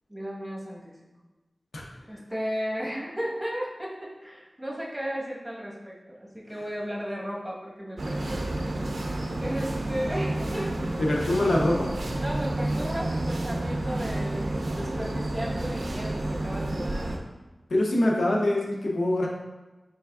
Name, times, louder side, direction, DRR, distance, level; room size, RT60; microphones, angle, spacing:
voice 1, 0.1-1.0 2.1-8.5 9.4-10.8 12.2-17.1, equal, 15° right, -4 dB, 1.1 m, -35 dB
sound 1, 8.0-17.2, right 1 dB, 80° right, 0.4 m, -30 dB
voice 2, 11.0-11.9 17.7-19.3, left 1 dB, 85° left, -2 dB, 0.6 m, -24 dB
4.3 x 3.3 x 2.3 m, 1.1 s
cardioid pair, 40°, 0 cm